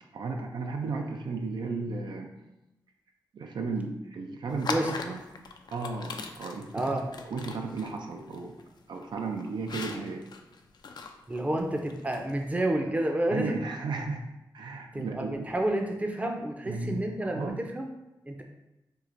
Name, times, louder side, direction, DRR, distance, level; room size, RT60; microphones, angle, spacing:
voice 1, 0.1-2.3 3.3-5.3 5.7-7.0 7.3-8.5 8.9-10.3 13.3-14.2 14.5-15.5 16.7-17.0 17.3-17.6, right 3 dB, 75° right, 2 dB, 0.4 m, -34 dB
sound 1, 4.5-12.5, left 4 dB, 65° left, 0.3 m, -40 dB
voice 2, 6.7-7.0 11.3-13.5 14.9-17.9 18.3-18.4, right 1 dB, 20° right, 3 dB, 0.5 m, -29 dB
4.5 x 2.4 x 2.5 m, 0.97 s
cardioid pair, 60°, 8 cm